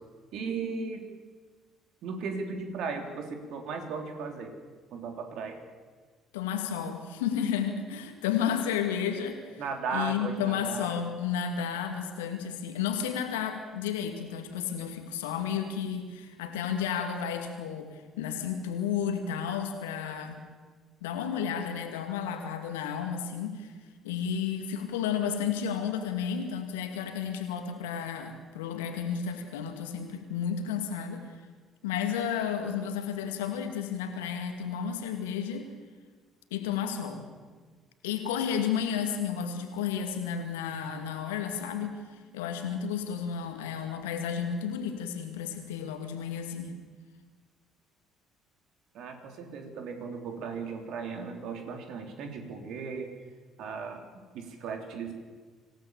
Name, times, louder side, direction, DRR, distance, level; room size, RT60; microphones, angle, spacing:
voice 1, 0.3-1.0 2.0-4.5 4.9-5.6 9.6-10.9 48.9-53.1 53.6-54.0 54.3-55.1, right 5 dB, 55° right, 4 dB, 3.4 m, -36 dB
voice 2, 6.3-9.6 9.9-20.4 21.0-23.7 24.0-31.3 31.8-35.7 36.5-37.3 38.0-46.8, left 8 dB, 70° left, 5 dB, 2.5 m, -32 dB
26.0 x 17.0 x 7.2 m, 1.5 s
figure-of-eight pair, 50°, 0 cm